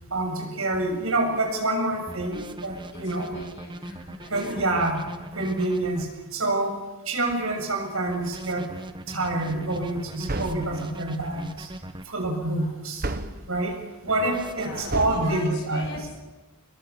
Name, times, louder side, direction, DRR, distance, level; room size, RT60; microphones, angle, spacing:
voice 1, 0.1-3.4 4.3-5.0 5.3-6.7 7.1-8.7 9.1-11.7 12.1-13.1 13.5-15.8, right 2 dB, 75° right, 2 dB, 7.2 m, -27 dB
sound 1, 2.1-6.0 8.1-12.1 14.1-15.0, right 1 dB, 20° right, 1.3 m, -40 dB
voice 2, 2.9-4.7 12.4-12.7 14.5-16.2, left 2 dB, 60° left, -2 dB, 7.5 m, -41 dB
sound 2, 10.2-10.8 13.0-13.5 14.9-15.3, right 2 dB, 45° right, 1.3 m, -30 dB
28.0 x 21.5 x 7.1 m, 1.1 s
head